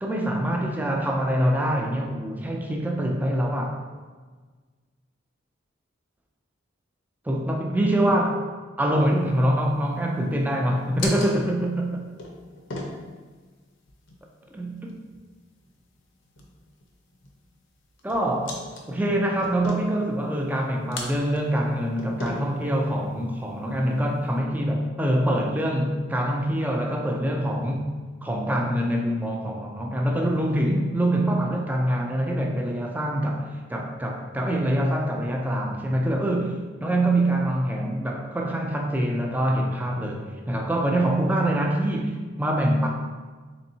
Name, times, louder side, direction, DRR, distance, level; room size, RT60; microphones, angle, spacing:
voice 1, 0.0-3.8 7.3-8.4 8.8-12.0 14.5-15.0 18.0-18.6 18.9-27.9 28.2-36.5 36.8-42.9, right 1 dB, 10° right, 1 dB, 0.3 m, -25 dB
sound 1, 9.0-24.4, left 2 dB, 70° left, 0.6 m, -41 dB
4.0 x 3.4 x 2.7 m, 1.4 s
head